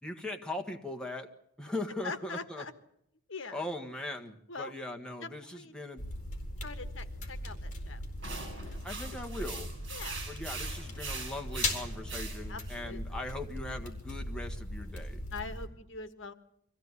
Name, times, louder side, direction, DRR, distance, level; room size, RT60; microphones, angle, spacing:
voice 1, 0.0-1.3 1.6-2.6 3.5-6.0 8.8-9.7 10.3-15.2, left 1 dB, 5° left, 2 dB, 1.5 m, -40 dB
voice 2, 2.0-2.7 3.3-3.6 4.5-4.7 5.2-5.7 6.6-8.0 8.5-8.8 9.9-10.2 12.5-13.2 15.3-16.3, left 4 dB, 60° left, 10 dB, 1.5 m, -43 dB
sound 1, 6.0-15.7, left 1 dB, 35° left, 4.1 m, -39 dB
sound 2, 8.2-12.8, right 4 dB, 55° right, 7.9 m, -42 dB
24.0 x 16.0 x 9.7 m, 0.75 s
head